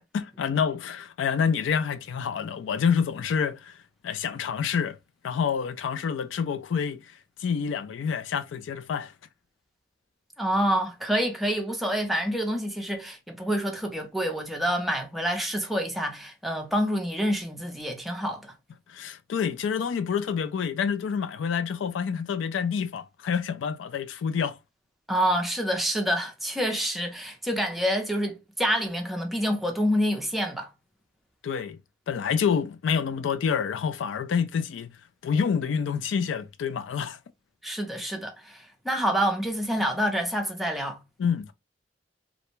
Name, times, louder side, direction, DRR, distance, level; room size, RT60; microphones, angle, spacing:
voice 1, 0.0-3.8 4.0-5.0 5.2-7.0 7.4-9.1 18.9-24.6 31.4-31.8 32.1-34.9 35.2-37.2 41.2-41.5, left 6 dB, 80° left, 0.3 m, -27 dB
voice 2, 10.4-18.5 25.1-30.7 37.6-41.0, equal, ahead, 0.5 m, -27 dB
2.5 x 2.1 x 3.0 m
head